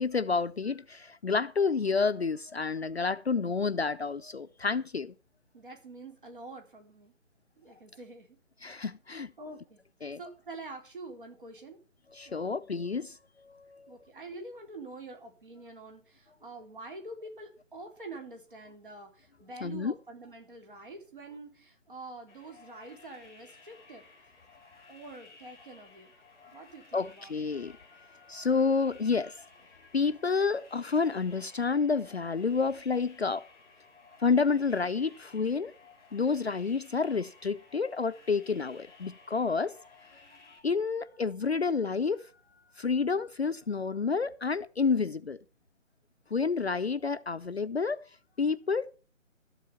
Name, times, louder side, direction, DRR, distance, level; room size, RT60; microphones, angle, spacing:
voice 1, 0.0-5.1 8.6-9.3 10.0-10.2 12.1-13.9 19.6-19.9 26.9-27.8 28.3-29.4 29.9-33.5 34.2-35.7 36.1-39.8 40.6-42.3 42.8-45.4 46.3-48.0 48.4-48.9, left 5 dB, 55° left, 0.5 m, -29 dB
voice 2, 5.5-7.1 7.6-8.4 8.8-8.9 9.4-9.8 10.2-11.8 12.3-12.7 13.9-24.1 24.9-26.1 26.5-27.4, right 2 dB, 40° right, 4.0 m, -46 dB
sound 1, 22.3-40.6, left 4 dB, 5° left, 2.2 m, -57 dB
13.0 x 7.9 x 6.8 m
hypercardioid pair, 180°, 39 cm